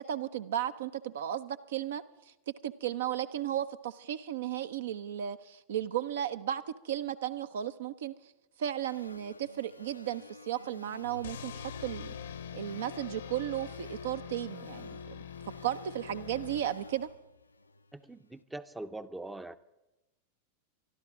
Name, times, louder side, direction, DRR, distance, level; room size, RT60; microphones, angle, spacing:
voice 1, 0.0-2.0 2.6-8.1 8.6-12.1 12.5-15.2 15.6-17.1, right 11 dB, 60° right, 13 dB, 0.5 m, -35 dB
sound 1, 8.8-18.2, left 3 dB, 80° left, 0.4 m, -51 dB
sound 2, 11.2-17.1, left 8 dB, 65° left, 0.8 m, -44 dB
voice 2, 17.9-19.6, right 2 dB, 5° right, 13 dB, 0.5 m, -42 dB
24.5 x 12.0 x 3.6 m, 0.99 s
figure-of-eight pair, 90°, 0 cm